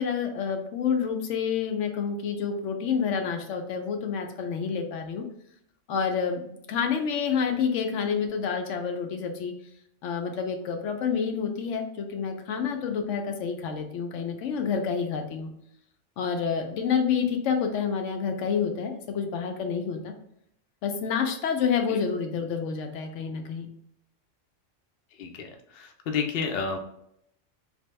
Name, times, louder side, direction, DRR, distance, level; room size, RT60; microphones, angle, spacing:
voice 1, 0.0-5.3 5.9-6.4 6.7-9.5 10.0-15.5 16.2-20.1 20.8-23.7, left 6 dB, 85° left, 5 dB, 0.9 m, -28 dB
voice 2, 25.1-26.8, left 5 dB, 60° left, 4 dB, 0.7 m, -31 dB
3.5 x 2.9 x 3.1 m, 0.72 s
omnidirectional pair, 1.3 m